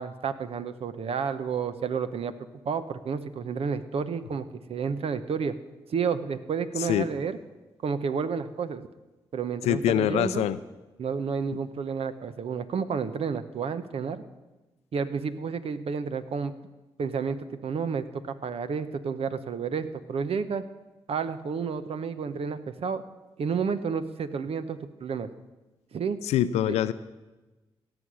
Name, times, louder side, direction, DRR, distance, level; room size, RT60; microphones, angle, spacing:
voice 1, 0.0-2.3 2.6-5.6 5.9-7.4 7.8-8.9 9.3-10.5 11.0-14.2 14.9-16.5 17.0-20.6 21.1-23.0 23.4-25.3 25.9-26.2 26.7-26.8, right 6 dB, 65° right, 12 dB, 0.9 m, -31 dB
voice 2, 9.7-10.6 26.3-26.9, left 11 dB, 90° left, 14 dB, 0.5 m, -24 dB
17.0 x 7.1 x 6.3 m, 1.1 s
supercardioid pair, 50°, 11 cm